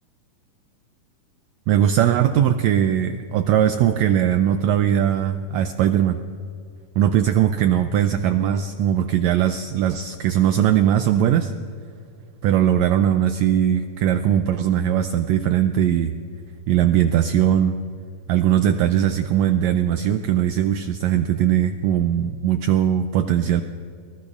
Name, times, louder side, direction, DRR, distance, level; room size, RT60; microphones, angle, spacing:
voice 1, 1.7-6.2 7.0-11.5 12.4-16.1 16.7-17.8 18.3-23.6, right 10 dB, 90° right, 9 dB, 1.5 m, -20 dB
29.5 x 19.0 x 2.4 m, 2.3 s
omnidirectional pair, 3.7 m